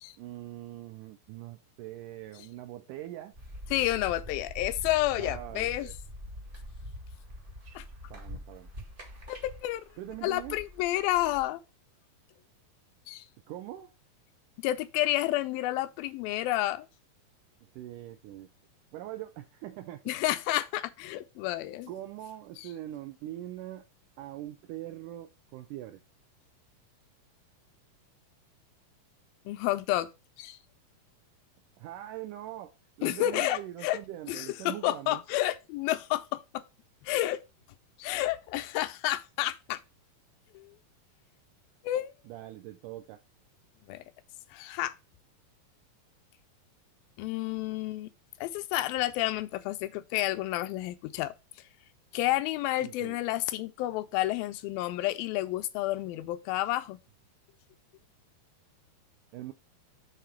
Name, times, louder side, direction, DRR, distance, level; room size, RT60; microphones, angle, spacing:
voice 1, 0.2-3.3 5.2-5.9 8.1-8.7 10.0-10.6 13.5-13.9 17.6-18.5 18.9-20.0 21.9-23.9 24.2-26.0 31.8-35.2 42.3-43.2 52.8-53.2 59.3-59.5, right 13 dB, 85° right, 1.8 m, -42 dB
sound 1, 3.3-11.4, left 1 dB, 50° right, 0.6 m, -44 dB
voice 2, 3.7-5.9 7.8-7.9 9.3-9.8 10.2-11.6 13.1-13.2 14.6-16.9 20.1-21.9 22.6-22.7 29.5-30.1 30.4-30.6 33.0-34.0 34.3-36.6 37.0-37.4 38.0-39.8 40.5-40.8 41.8-42.1 43.9-44.0 44.5-44.9 47.2-48.1 48.4-51.3 52.1-57.0, left 15 dB, 85° left, 2.3 m, -30 dB
6.7 x 3.7 x 5.8 m
omnidirectional pair, 4.1 m